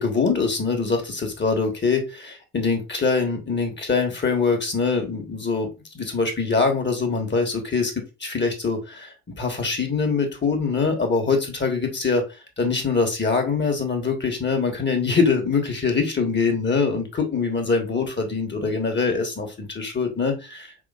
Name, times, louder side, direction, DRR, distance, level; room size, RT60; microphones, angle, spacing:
voice 1, 0.0-5.7 5.9-12.2 12.6-20.7, left 4 dB, 20° left, 4 dB, 1.5 m, -23 dB
4.9 x 3.4 x 2.4 m, 0.27 s
hypercardioid pair, 55°, 49 cm